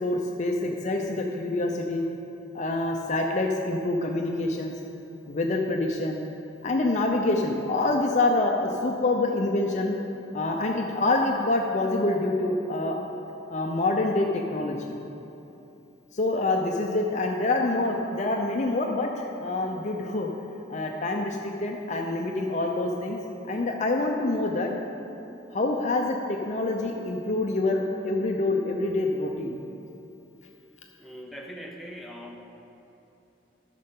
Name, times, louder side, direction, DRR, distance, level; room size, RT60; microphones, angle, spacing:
voice 1, 0.0-2.0 2.5-4.7 5.3-6.2 6.6-10.0 10.3-13.0 13.5-14.8 16.1-20.3 20.7-23.2 23.5-24.7 25.5-29.6, left 2 dB, 45° left, 1 dB, 0.6 m, -26 dB
voice 2, 31.0-32.4, equal, ahead, 0 dB, 0.7 m, -41 dB
13.0 x 6.6 x 3.7 m, 2.9 s
head